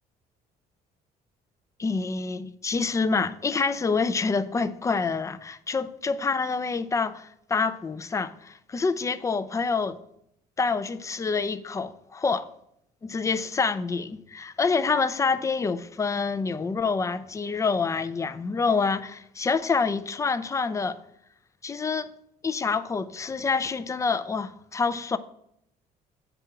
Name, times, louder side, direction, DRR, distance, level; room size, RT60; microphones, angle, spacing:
voice 1, 1.8-10.0 10.6-12.4 13.0-21.0 21.6-22.1 22.4-25.2, left 4 dB, 20° left, 0.4 m, -27 dB
7.9 x 3.6 x 5.8 m
cardioid pair, 110°, 17 cm